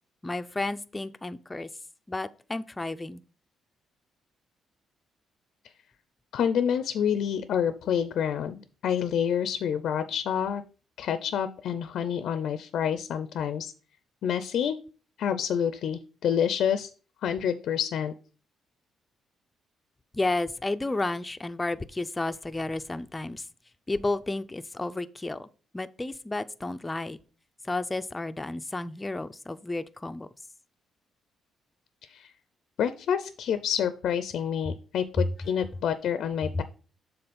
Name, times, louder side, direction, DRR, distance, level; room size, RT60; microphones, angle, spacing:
voice 1, 0.2-1.7 2.1-3.2 20.1-23.5 23.9-25.5 25.7-27.2 27.6-30.3 35.2-35.3 36.5-36.6, left 2 dB, 15° left, 0.5 m, -31 dB
voice 2, 6.3-10.6 11.0-13.7 14.2-14.8 15.2-16.9 17.2-18.1 32.1-32.3 32.8-36.6, left 8 dB, 75° left, 0.5 m, -28 dB
6.8 x 3.9 x 5.1 m
cardioid pair, 90°, 0 cm